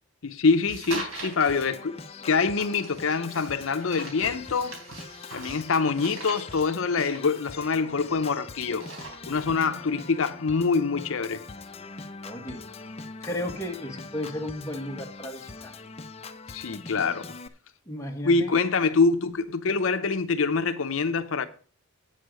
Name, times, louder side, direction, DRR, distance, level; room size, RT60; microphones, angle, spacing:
voice 1, 0.2-2.0 2.2-4.8 5.3-8.9 9.3-11.4 16.5-17.2 18.2-21.5, left 4 dB, 70° left, 0.6 m, -25 dB
sound 1, 0.7-1.6 2.5-8.3 8.6-9.6, right 2 dB, 75° right, 3.6 m, -41 dB
Organ, 1.5-17.5, left 3 dB, 30° left, 0.7 m, -42 dB
voice 2, 12.2-12.7 13.2-15.8 17.9-18.5, left 1 dB, 15° left, 1.3 m, -34 dB
9.0 x 6.6 x 6.3 m
head